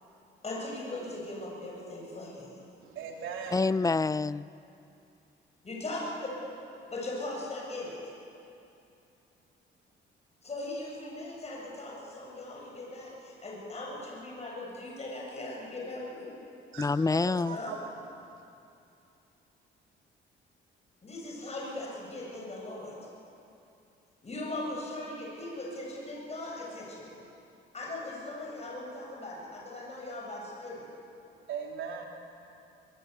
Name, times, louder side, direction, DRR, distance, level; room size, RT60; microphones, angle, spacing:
voice 1, 0.4-2.5 5.6-6.0 6.9-8.0 10.4-16.3 17.5-17.7 21.0-23.0 24.2-27.1 27.7-30.8, left 2 dB, 35° left, 7.7 m, -39 dB
voice 2, 2.8-3.6 16.7-17.9 31.5-32.1, right 6 dB, 85° right, 3.7 m, -39 dB
voice 3, 3.5-4.5 16.8-17.6, left 3 dB, 15° left, 0.5 m, -27 dB
23.5 x 20.5 x 8.4 m
cardioid pair, 90°, 20 cm